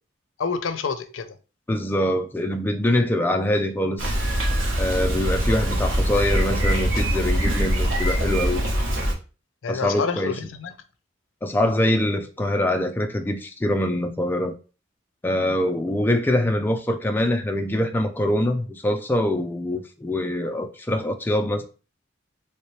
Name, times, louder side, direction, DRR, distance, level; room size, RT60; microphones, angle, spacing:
voice 1, 0.4-1.4 9.6-10.7, left 5 dB, 90° left, 0.5 m, -28 dB
voice 2, 1.7-4.1 4.8-8.6 9.7-10.3 11.4-14.5 15.2-21.6, left 1 dB, 10° left, 0.3 m, -24 dB
Bicycle, 4.0-9.1, right 1 dB, 85° right, 0.9 m, -23 dB
3.2 x 2.9 x 3.1 m
head